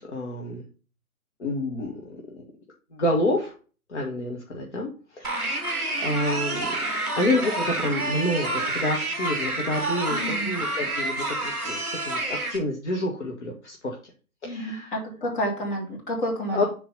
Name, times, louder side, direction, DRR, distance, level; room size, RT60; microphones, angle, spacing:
voice 1, 0.1-0.6 1.4-2.2 2.9-3.5 3.9-6.8 7.1-14.0 14.4-14.9 16.5-16.6, left 1 dB, 50° left, -1 dB, 1.8 m, -28 dB
sound 1, 5.2-12.6, right 2 dB, ahead, 2.0 m, -28 dB
voice 2, 10.1-10.5 14.4-16.7, equal, 35° left, -2 dB, 3.3 m, -30 dB
7.1 x 4.6 x 5.5 m, 0.36 s
figure-of-eight pair, 140°, 45 cm